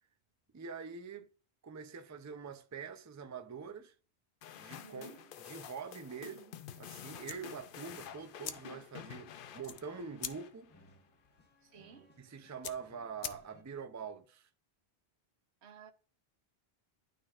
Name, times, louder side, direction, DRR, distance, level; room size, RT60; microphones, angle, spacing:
voice 1, 0.5-1.3 1.6-3.9 4.6-5.1 5.5-10.7 12.2-14.5, right 6 dB, 25° right, 0.4 m, -45 dB
sound 1, 4.4-10.9, left 9 dB, 60° left, 0.7 m, -50 dB
voice 2, 4.8-5.3 11.6-12.2 15.6-15.9, right 7 dB, 85° right, 1.1 m, -55 dB
sound 2, 7.2-13.8, left 9 dB, 80° left, 0.9 m, -48 dB
sound 3, 7.9-13.6, equal, 10° left, 1.4 m, -65 dB
12.0 x 4.1 x 2.4 m
omnidirectional pair, 1.1 m